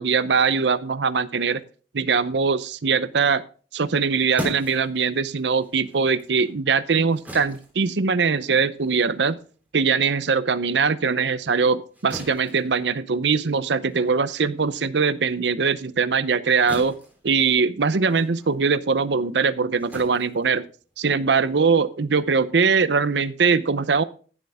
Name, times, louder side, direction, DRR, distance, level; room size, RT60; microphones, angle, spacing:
voice 1, 0.0-1.6 1.9-3.4 3.7-9.4 9.7-16.9 17.2-20.7 21.0-24.0, right 5 dB, 75° right, 15 dB, 0.7 m, -21 dB
sound 1, 3.8-10.6 11.0-21.2, equal, 10° right, 3.3 m, -41 dB
15.0 x 7.8 x 3.5 m, 0.39 s
head